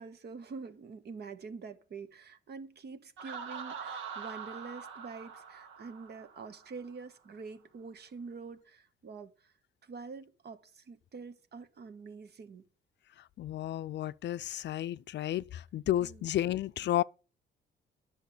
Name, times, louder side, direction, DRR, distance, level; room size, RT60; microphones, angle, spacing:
voice 1, 0.0-9.5 9.8-12.6 16.0-16.2, right 4 dB, 55° right, 1.4 m, -46 dB
Laughter, 3.2-6.9, right 6 dB, 85° right, 1.5 m, -44 dB
voice 2, 13.4-17.0, left 13 dB, 65° left, 0.5 m, -32 dB
10.5 x 7.0 x 6.7 m
cardioid pair, 90°, 20 cm